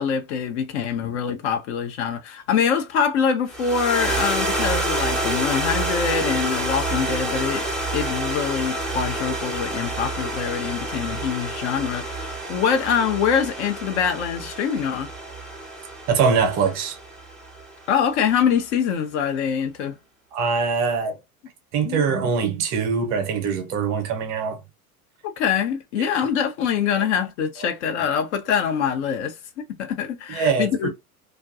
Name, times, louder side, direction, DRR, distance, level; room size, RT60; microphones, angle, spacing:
voice 1, 0.0-7.6 7.9-15.1 17.9-20.0 21.8-22.0 25.4-29.4 29.8-30.9, left 7 dB, 50° left, 0.7 m, -24 dB
sound 1, 3.5-17.9, right 2 dB, ahead, 0.6 m, -28 dB
voice 2, 16.1-17.0 20.3-21.2 21.7-24.6 27.0-27.1 30.3-30.9, right 5 dB, 35° right, 0.7 m, -23 dB
2.5 x 2.3 x 2.4 m
figure-of-eight pair, 80°, 44 cm